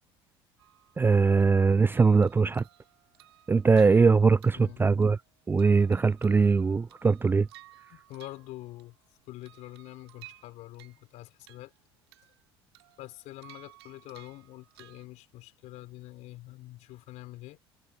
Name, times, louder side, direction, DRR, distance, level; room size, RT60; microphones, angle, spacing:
sound 1, 0.6-1.5 1.9-5.3 5.6-9.0 9.4-11.1 11.4-12.4 12.7-15.1, right 16 dB, 85° right, 3.1 m, -56 dB
voice 1, 1.0-2.6 3.5-5.2 5.5-7.5, right 4 dB, 15° right, 0.3 m, -21 dB
voice 2, 4.5-4.9 7.9-9.0 9.3-11.7 13.0-17.6, left 17 dB, 65° left, 3.7 m, -45 dB
hypercardioid pair, 75°, 13 cm